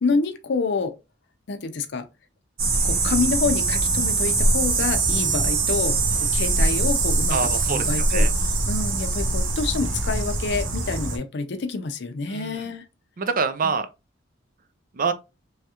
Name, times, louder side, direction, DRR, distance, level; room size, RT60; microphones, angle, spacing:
voice 1, 0.0-0.9 1.5-2.1 2.8-7.4 7.7-8.3 8.7-12.8, left 4 dB, 60° left, 0.5 m, -27 dB
sound 1, 2.6-11.2, right 3 dB, 80° right, 0.8 m, -22 dB
voice 2, 7.3-8.3 12.3-12.7 13.2-13.9 14.9-15.1, right 5 dB, 45° right, 0.4 m, -26 dB
3.1 x 2.4 x 2.8 m
head